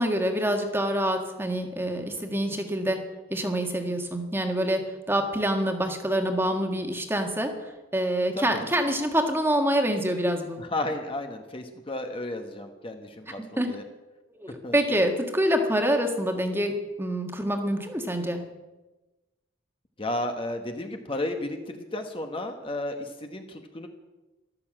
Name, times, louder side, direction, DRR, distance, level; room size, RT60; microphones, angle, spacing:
voice 1, 0.0-3.0 3.3-10.6 13.6-13.7 14.3-18.4, equal, 10° right, 4 dB, 1.5 m, -26 dB
voice 2, 10.6-13.8 14.6-14.8 20.0-23.9, left 1 dB, 25° left, 5 dB, 1.1 m, -33 dB
13.5 x 13.0 x 7.6 m, 1.1 s
head